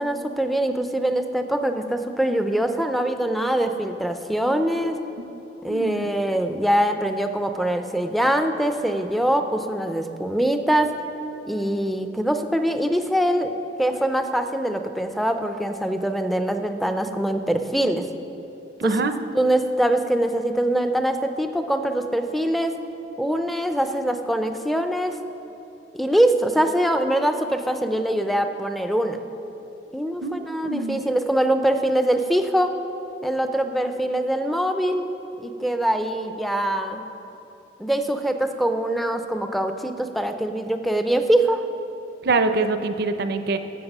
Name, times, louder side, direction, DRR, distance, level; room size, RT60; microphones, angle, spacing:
voice 1, 0.0-5.0 5.6-10.9 11.5-13.5 13.8-18.1 18.8-18.9 19.4-22.7 23.2-25.2 25.9-29.2 29.9-32.7 33.2-35.1 35.4-37.0 37.8-41.6, right 1 dB, ahead, 6 dB, 0.5 m, -23 dB
voice 2, 5.7-6.1 18.8-19.1 30.2-31.0 42.2-43.6, right 3 dB, 60° right, 9 dB, 0.6 m, -25 dB
11.5 x 7.5 x 5.4 m, 3.0 s
head